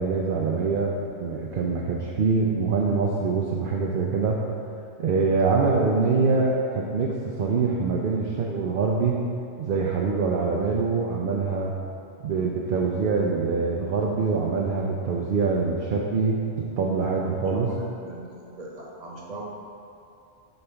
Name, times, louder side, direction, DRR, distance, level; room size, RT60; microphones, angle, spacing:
voice 1, 0.0-4.4 5.0-9.2 9.6-11.7 12.2-16.4 16.8-17.7, right 4 dB, 55° right, -2 dB, 0.7 m, -24 dB
voice 2, 17.1-19.4, right 1 dB, 35° right, -3 dB, 1.2 m, -40 dB
8.2 x 3.3 x 5.6 m, 2.6 s
omnidirectional pair, 1.2 m